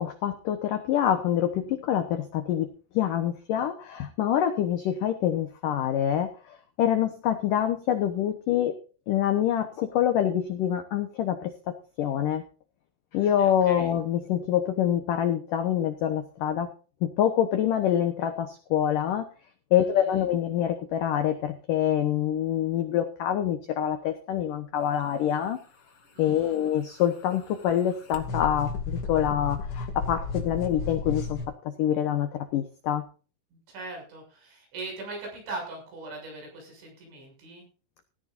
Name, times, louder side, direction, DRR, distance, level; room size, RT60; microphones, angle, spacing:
voice 1, 0.0-8.7 9.1-11.5 12.0-12.4 13.1-16.7 17.0-19.3 19.7-25.6 26.2-31.4 31.8-33.0, left 10 dB, 70° left, 8 dB, 2.0 m, -26 dB
voice 2, 13.4-13.9 19.8-19.9 26.1-26.6 33.7-37.7, right 3 dB, 85° right, 1 dB, 9.1 m, -40 dB
sound 1, 26.3-31.5, left 4 dB, 40° left, 2.3 m, -34 dB
17.5 x 13.0 x 2.6 m, 0.36 s
omnidirectional pair, 5.2 m